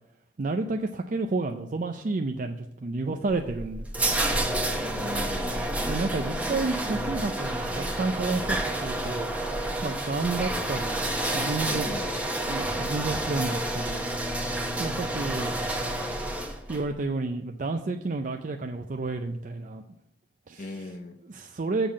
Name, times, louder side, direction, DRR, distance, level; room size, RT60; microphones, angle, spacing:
voice 1, 0.4-4.2 5.8-9.3 9.8-11.0 11.3-12.0 12.5-14.0 14.8-15.5 16.7-19.8 20.5-20.6 21.3-21.9, right 3 dB, 45° right, 5 dB, 0.5 m, -30 dB
sound 1, 3.3-16.8, right 1 dB, 10° right, 0.9 m, -29 dB
voice 2, 4.8-5.7 11.7-12.2 20.6-21.2, left 2 dB, 45° left, 4 dB, 0.6 m, -39 dB
6.9 x 5.6 x 7.4 m, 0.87 s
head